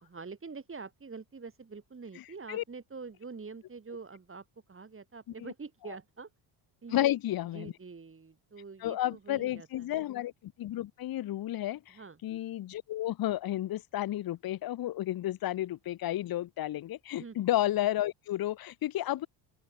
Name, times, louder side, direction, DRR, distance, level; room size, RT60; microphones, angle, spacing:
voice 1, 0.0-6.3 6.8-7.1 7.5-10.0 11.9-12.2 17.2-17.4, right 4 dB, 25° right, 4.2 m, -45 dB
voice 2, 6.9-7.7 8.8-12.0 12.2-19.3, left 14 dB, 45° left, 0.9 m, -32 dB
open air
supercardioid pair, 85°, 50 cm